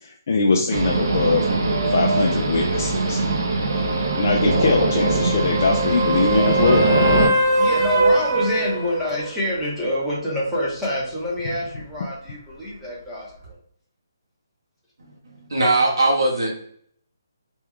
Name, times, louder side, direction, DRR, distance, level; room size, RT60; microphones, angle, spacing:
voice 1, 0.0-1.5 1.9-3.3 3.7-6.9, left 4 dB, 40° left, 0 dB, 0.4 m, -22 dB
sound 1, 0.7-7.3, right 3 dB, 55° right, 0.7 m, -21 dB
sound 2, 3.7-9.3 13.4-13.5, right 1 dB, 25° right, 1.1 m, -23 dB
voice 2, 7.6-13.6, left 1 dB, ahead, -9 dB, 0.9 m, -27 dB
voice 3, 15.5-16.5, right 2 dB, 80° right, -2 dB, 1.1 m, -19 dB
3.0 x 2.3 x 3.6 m, 0.63 s
hypercardioid pair, 165°, 2 cm